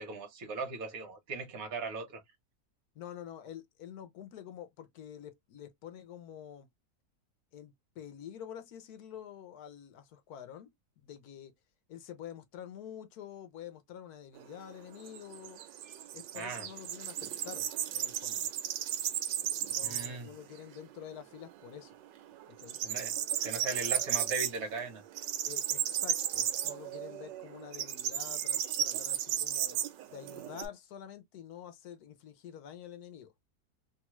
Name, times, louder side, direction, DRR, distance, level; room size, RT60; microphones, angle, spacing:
voice 1, 0.0-2.2 16.3-16.7 19.8-20.3 22.8-23.1 23.4-25.0, right 4 dB, 55° right, 1.3 m, -38 dB
voice 2, 2.9-6.7 7.5-10.7 11.0-11.5 11.9-15.6 16.1-17.7 17.9-18.5 19.7-21.9 22.5-22.8 25.4-29.8 30.1-33.3, left 9 dB, 65° left, 1.1 m, -47 dB
sound 1, 14.4-20.3 20.6-20.7 21.1-21.9 22.2-30.7, right 10 dB, 90° right, 1.3 m, -34 dB
3.1 x 2.3 x 3.0 m
omnidirectional pair, 1.9 m